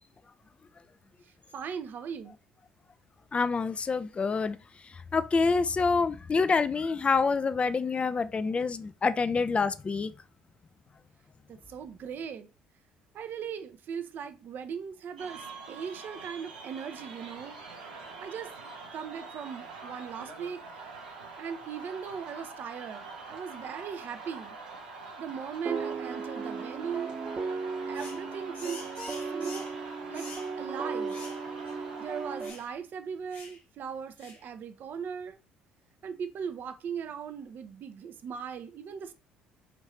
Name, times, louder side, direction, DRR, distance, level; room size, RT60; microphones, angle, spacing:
voice 1, 1.2-2.4 11.5-12.5 13.1-17.6 18.2-18.5 18.9-20.6 21.4-24.6 25.2-27.1 27.9-28.8 29.3-29.7 30.1-30.3 30.6-31.2 32.0-35.4 36.0-39.1, right 7 dB, 50° right, 0.5 m, -39 dB
voice 2, 3.3-4.6 5.1-10.1, left 4 dB, 30° left, 0.4 m, -27 dB
sound 1, 15.2-32.8, right 4 dB, 90° right, 0.8 m, -45 dB
sound 2, 25.7-32.5, right 4 dB, 30° right, 0.9 m, -36 dB
sound 3, 27.9-28.2 28.5-29.8 30.1-30.5 31.1-31.4 31.7-31.8 32.4-32.7 33.3-33.6 34.2-34.4, left 3 dB, 60° left, 2.3 m, -46 dB
5.1 x 2.7 x 3.1 m
hypercardioid pair, 55°, 4 cm